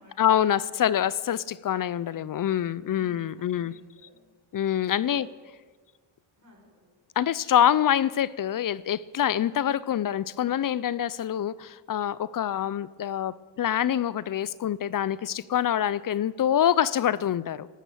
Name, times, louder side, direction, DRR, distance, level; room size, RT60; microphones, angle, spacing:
voice 1, 0.2-3.7 4.5-5.3 7.2-17.7, left 10 dB, 45° left, 20 dB, 0.6 m, -25 dB
voice 2, 2.8-4.2 5.0-5.4 6.4-6.9, equal, 40° right, -2 dB, 5.6 m, -55 dB
13.5 x 9.0 x 9.3 m, 1.5 s
cardioid pair, 70°, 47 cm